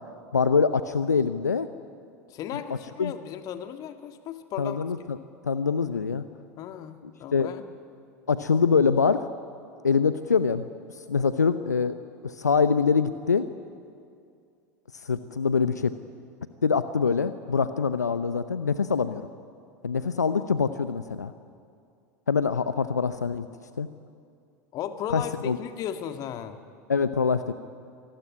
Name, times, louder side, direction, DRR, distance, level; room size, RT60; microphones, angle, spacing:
voice 1, 0.3-1.7 3.0-3.1 4.6-5.2 5.5-6.2 7.3-7.5 8.3-9.3 9.8-10.7 11.1-11.9 12.2-13.5 15.0-15.9 16.6-19.2 19.8-21.3 22.3-23.5 23.8-23.9 25.1-25.6 26.9-27.5, left 5 dB, 85° left, 12 dB, 0.8 m, -24 dB
voice 2, 2.3-4.8 6.6-7.7 24.7-26.6, left 9 dB, 45° left, 8 dB, 1.8 m, -35 dB
27.0 x 19.5 x 9.8 m, 2.4 s
figure-of-eight pair, 80°, 9 cm